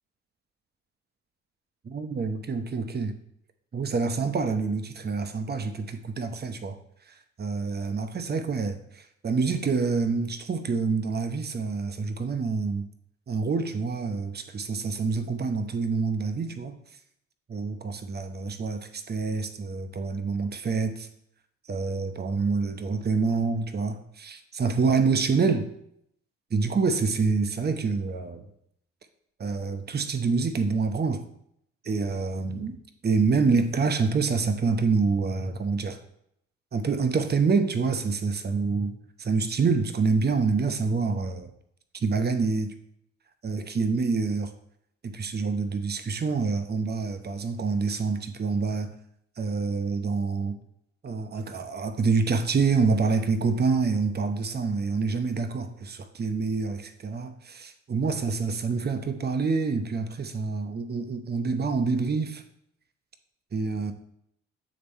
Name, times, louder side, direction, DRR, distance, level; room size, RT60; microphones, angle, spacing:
voice 1, 1.8-3.2 3.7-6.8 7.4-12.9 13.3-16.8 17.5-21.1 21.7-25.7 26.5-28.5 29.4-31.2 31.8-32.8 33.0-36.0 36.7-41.5 42.0-42.7 43.4-44.5 45.0-48.9 49.4-50.6 51.0-62.4 63.5-63.9, right 4 dB, 30° right, 8 dB, 0.8 m, -27 dB
8.6 x 3.5 x 4.4 m, 0.72 s
hypercardioid pair, 50°, 33 cm